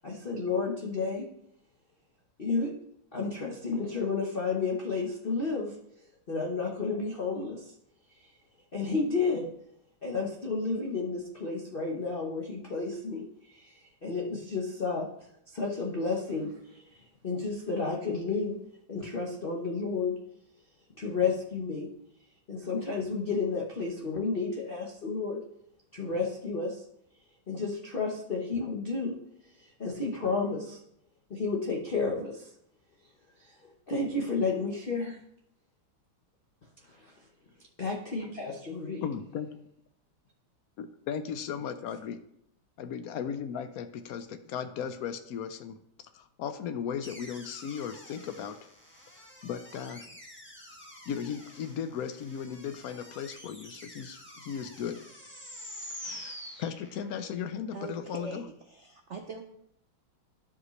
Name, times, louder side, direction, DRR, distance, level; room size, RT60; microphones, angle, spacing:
voice 1, 0.0-1.3 2.4-2.7 3.1-5.7 6.3-7.7 8.7-9.5 10.0-15.0 15.5-18.6 18.9-20.2 21.0-21.9 22.5-25.4 25.9-26.8 27.5-29.2 29.8-30.8 31.3-32.5 33.4-33.6 33.9-35.2 36.9-37.2 37.8-39.0, left 4 dB, 35° left, -2 dB, 1.0 m, -31 dB
voice 2, 39.0-39.5 40.8-42.2 42.8-45.8 46.1-48.6 49.4-50.1 51.1-55.1 56.0-58.4, left 8 dB, 85° left, 9 dB, 0.8 m, -36 dB
sound 1, 47.0-57.3, equal, 5° left, 1.0 m, -47 dB
voice 3, 57.7-59.4, right 4 dB, 90° right, 5 dB, 0.6 m, -41 dB
14.0 x 5.3 x 3.2 m, 0.75 s
omnidirectional pair, 2.3 m